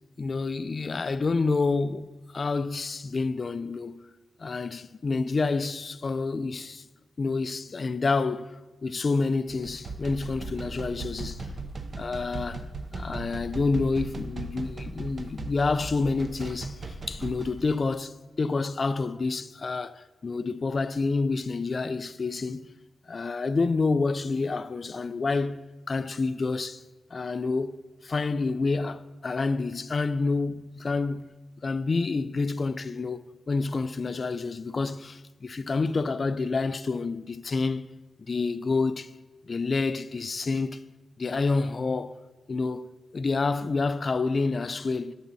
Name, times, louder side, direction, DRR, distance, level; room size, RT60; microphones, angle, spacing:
voice 1, 0.2-2.1 2.3-4.0 4.4-6.8 7.2-8.5 8.8-11.5 12.0-12.7 12.9-22.6 23.1-25.6 25.9-26.8 27.1-27.8 28.0-31.3 31.6-37.9 38.3-39.1 39.4-40.8 41.2-42.2 42.5-42.9 43.1-45.1, left 3 dB, 35° left, 0.3 m, -28 dB
sound 1, 9.5-17.7, right 3 dB, 35° right, 0.6 m, -37 dB
18.0 x 7.3 x 2.7 m
wide cardioid pair, 165°, 0 cm